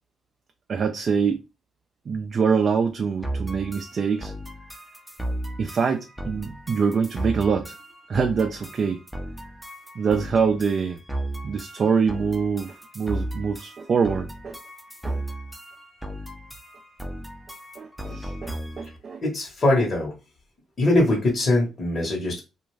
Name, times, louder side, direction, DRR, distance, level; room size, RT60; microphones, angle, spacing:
voice 1, 0.7-1.4 2.1-4.3 5.6-7.8 8.1-9.0 10.0-11.0 11.4-14.6 15.0-15.2 17.8-19.2, right 5 dB, 45° right, 0.4 m, -24 dB
sound 1, 3.2-19.0, right 1 dB, ahead, 0.6 m, -35 dB
voice 2, 19.2-20.1 20.8-22.4, left 2 dB, 40° left, 1.2 m, -22 dB
2.5 x 2.4 x 3.1 m
cardioid pair, 90°, 0 cm